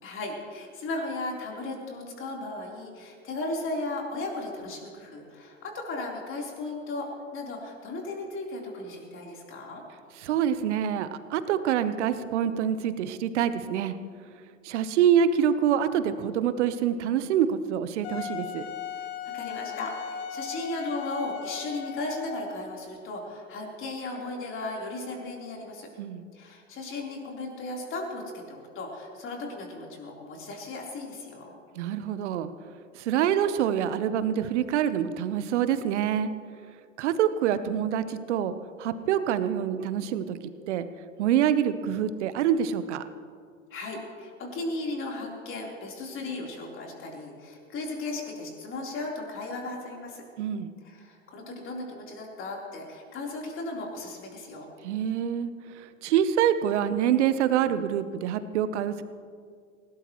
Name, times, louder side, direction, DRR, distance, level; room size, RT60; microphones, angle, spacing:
voice 1, 0.0-9.8 19.0-25.9 26.3-31.5 43.7-50.2 50.8-54.7, left 2 dB, 30° left, -1 dB, 4.0 m, -36 dB
voice 2, 10.2-13.9 14.6-18.7 26.0-26.2 31.8-32.5 33.0-36.3 37.0-40.4 40.7-40.9 41.2-43.1 50.4-50.7 54.8-55.5 55.8-59.0, right 9 dB, 60° right, 12 dB, 1.1 m, -26 dB
Wind instrument woodwind instrument, 18.0-22.6, left 8 dB, 50° left, 1.1 m, -37 dB
20.0 x 18.0 x 3.1 m, 2.1 s
hypercardioid pair, 100°, 39 cm